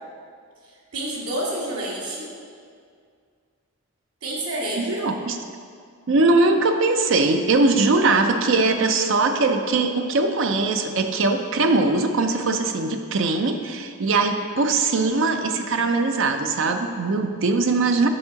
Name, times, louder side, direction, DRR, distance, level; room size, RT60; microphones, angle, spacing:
voice 1, 0.6-2.3 4.2-5.1, right 1 dB, 80° right, -5 dB, 1.7 m, -29 dB
voice 2, 4.8-5.4 6.1-18.1, right 3 dB, 60° right, 6 dB, 0.5 m, -21 dB
7.0 x 3.8 x 5.6 m, 2.2 s
head